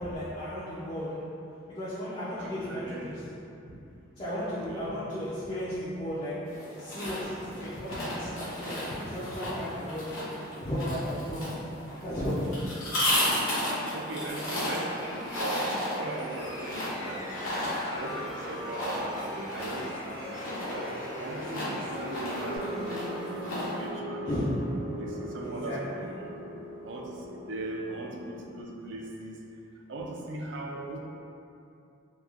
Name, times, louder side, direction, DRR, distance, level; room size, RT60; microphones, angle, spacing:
voice 1, 0.0-1.3 1.7-3.2 4.2-10.3 10.6-11.6 12.0-12.7 24.3-24.6 25.4-26.0, equal, 30° left, -10 dB, 0.3 m, -34 dB
voice 2, 2.4-3.3 3.7-3.8 4.5-4.9 13.9-15.0 15.3-17.3 17.9-19.9 20.2-20.6 21.2-24.4 24.9-26.3 26.8-29.4 29.9-31.0, right 2 dB, 60° right, -1 dB, 0.3 m, -39 dB
sound 1, 6.5-23.9, left 1 dB, 85° left, 0.8 m, -34 dB
Bird, 14.3-22.6, equal, 90° right, 0.8 m, -45 dB
sound 2, 16.3-28.6, equal, 15° right, 0.6 m, -40 dB
2.9 x 2.2 x 2.3 m, 2.7 s
head